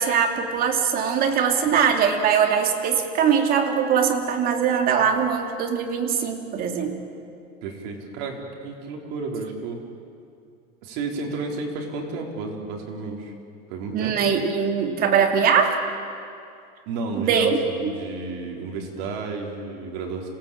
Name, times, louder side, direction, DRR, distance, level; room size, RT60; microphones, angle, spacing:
voice 1, 0.0-7.0 13.9-15.8 17.2-17.6 17.8-18.0, right 7 dB, 45° right, 4 dB, 2.7 m, -21 dB
voice 2, 7.6-9.8 10.8-13.3 13.7-14.2 16.9-20.3, right 3 dB, 75° right, 1 dB, 4.4 m, -32 dB
27.0 x 18.0 x 8.7 m, 2.4 s
cardioid pair, 145°, 21 cm